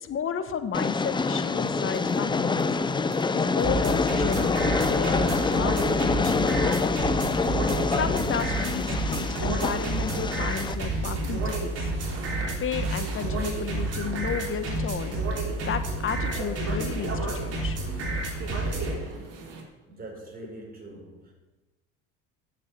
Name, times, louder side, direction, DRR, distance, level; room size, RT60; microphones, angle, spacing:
voice 1, 0.0-2.8 3.3-7.2 7.9-11.9 12.6-15.2 15.6-17.8, left 7 dB, 35° left, 10 dB, 1.2 m, -33 dB
Train, 0.7-10.7, left 4 dB, 15° left, 0.6 m, -26 dB
sound 1, 1.7-19.6, right 4 dB, 75° right, 2.6 m, -42 dB
sound 2, 3.6-19.0, right 2 dB, 45° right, 3.8 m, -30 dB
voice 2, 19.9-21.3, right 2 dB, 25° right, -1 dB, 4.8 m, -43 dB
8.4 x 7.4 x 8.3 m, 1.1 s
hypercardioid pair, 75°, 35 cm